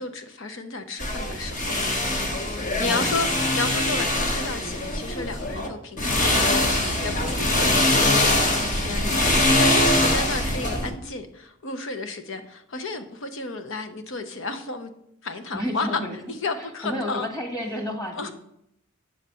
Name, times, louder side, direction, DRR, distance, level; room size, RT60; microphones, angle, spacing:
voice 1, 0.0-1.8 2.8-9.0 9.6-14.9 15.2-16.0 16.3-17.3 18.1-18.3, left 3 dB, 65° left, 0.9 m, -32 dB
sound 1, 1.0-5.7 6.0-10.9, left 1 dB, 40° left, 1.1 m, -23 dB
voice 2, 2.8-3.6 8.9-9.6 9.9-10.3 15.5-16.2 16.8-18.3, equal, 20° left, 1.6 m, -32 dB
8.7 x 4.0 x 6.9 m
head